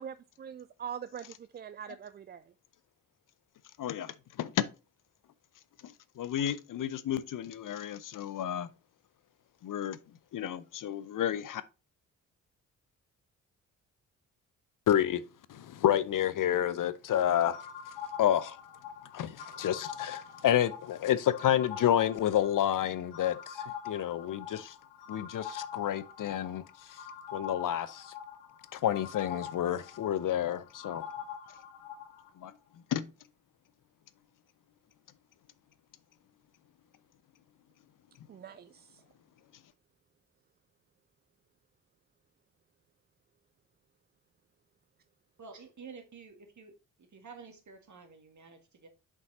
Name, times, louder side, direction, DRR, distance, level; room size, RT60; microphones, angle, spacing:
voice 1, 0.0-2.5 38.3-39.0, right 8 dB, 25° right, 0.3 m, -43 dB
voice 2, 3.8-4.7 5.8-8.7 9.6-10.0 10.3-11.6 14.9-15.2 15.5-17.6 18.2-18.6 19.1-24.7 25.1-27.0 27.3-28.1 28.7-31.0 32.4-32.5 32.9-33.1, left 10 dB, 50° left, 0.7 m, -30 dB
sound 1, 17.5-32.3, left 8 dB, 70° left, 1.4 m, -44 dB
voice 3, 45.4-46.7 47.0-48.9, right 5 dB, 45° right, 2.0 m, -50 dB
6.1 x 5.4 x 4.2 m
hypercardioid pair, 40°, 41 cm